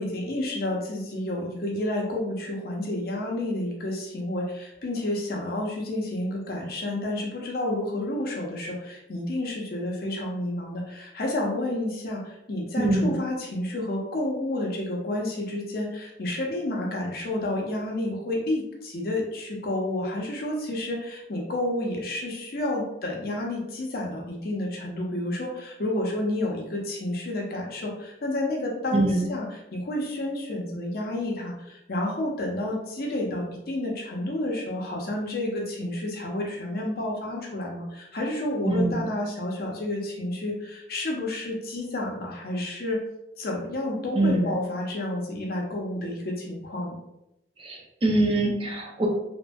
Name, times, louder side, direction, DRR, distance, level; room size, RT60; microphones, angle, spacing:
voice 1, 0.0-43.0 43.4-47.0, left 1 dB, 55° left, -1 dB, 0.6 m, -30 dB
voice 2, 12.8-13.1 28.9-29.3 38.6-39.1 44.2-44.5 47.6-49.1, right 2 dB, 30° right, 0 dB, 0.4 m, -24 dB
2.8 x 2.6 x 2.2 m, 0.86 s
head